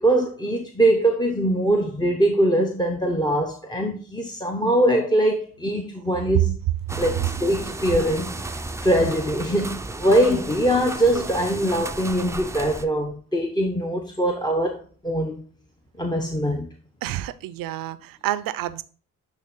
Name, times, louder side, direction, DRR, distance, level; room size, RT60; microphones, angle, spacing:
voice 1, 0.0-6.6 7.0-15.4 16.0-16.7, right 1 dB, 15° left, 0.8 m, -22 dB
sound 1, 6.9-12.8, right 2 dB, 10° right, 0.5 m, -33 dB
voice 2, 17.0-18.8, right 13 dB, 85° right, 0.5 m, -29 dB
8.5 x 3.4 x 3.7 m
cardioid pair, 70°, 33 cm